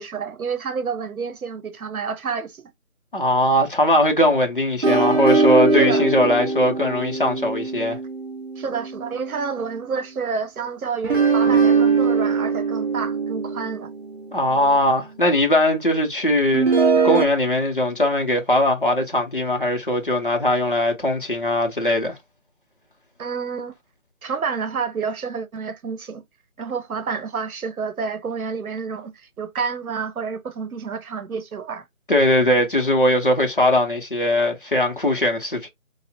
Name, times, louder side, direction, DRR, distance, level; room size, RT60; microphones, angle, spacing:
voice 1, 0.0-2.7 5.7-6.0 8.6-13.9 23.2-23.7 24.2-26.2 26.6-31.8, right 5 dB, 85° right, 0.8 m, -29 dB
voice 2, 3.1-8.0 14.3-22.2 32.1-35.7, left 1 dB, 40° left, 0.6 m, -20 dB
sound 1, 4.8-9.4 11.0-15.2 16.5-17.2, right 4 dB, 50° right, 0.7 m, -21 dB
3.3 x 2.0 x 2.5 m
figure-of-eight pair, 175°, 42 cm